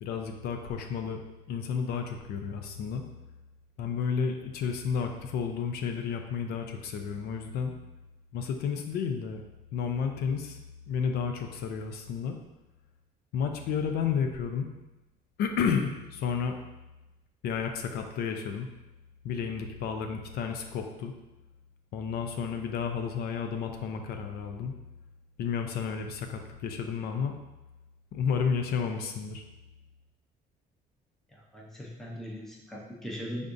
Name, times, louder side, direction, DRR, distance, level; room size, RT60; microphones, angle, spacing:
voice 1, 0.0-1.2 1.5-3.0 3.8-7.7 8.3-9.4 9.7-10.6 10.9-12.4 13.3-14.7 15.4-16.6 17.4-18.7 19.2-21.1 21.9-24.7 25.4-27.4 28.1-29.4, left 6 dB, 65° left, 5 dB, 0.6 m, -31 dB
voice 2, 31.3-33.5, equal, ahead, -3 dB, 0.6 m, -40 dB
5.2 x 3.5 x 2.6 m, 1.0 s
cardioid pair, 170°, 17 cm